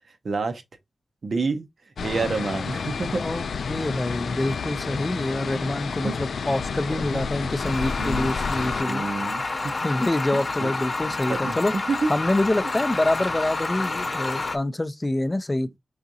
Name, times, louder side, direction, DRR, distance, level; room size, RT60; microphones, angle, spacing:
voice 1, 0.2-0.6 1.2-1.7 2.0-3.2 6.0-6.2 7.1-7.2 8.0-8.3 8.8-9.4 10.6-10.7 11.3-12.0 12.6-12.7, right 4 dB, 60° right, 0.7 m, -28 dB
sound 1, 2.0-8.8, left 5 dB, 85° left, 0.3 m, -30 dB
voice 2, 3.2-9.1 9.8-11.7 12.1-15.7, left 1 dB, 20° left, 0.4 m, -26 dB
sound 2, 7.6-14.6, left 3 dB, 40° left, 0.8 m, -29 dB
4.9 x 3.6 x 2.7 m
wide cardioid pair, 100°, 0 cm